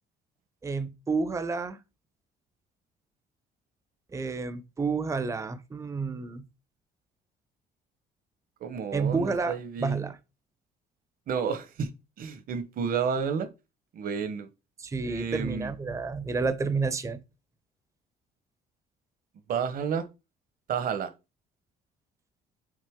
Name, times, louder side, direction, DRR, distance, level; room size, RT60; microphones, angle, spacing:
voice 1, 0.6-1.8 4.1-6.4 8.9-9.5 9.8-10.2 14.8-17.2, right 4 dB, 20° right, 0.7 m, -30 dB
voice 2, 8.6-10.0 11.3-11.9 12.2-13.5 13.9-14.5 15.0-15.7 19.5-20.1 20.7-21.1, right 6 dB, 60° right, 1.1 m, -31 dB
6.5 x 4.0 x 3.7 m
cardioid pair, 110°, 17 cm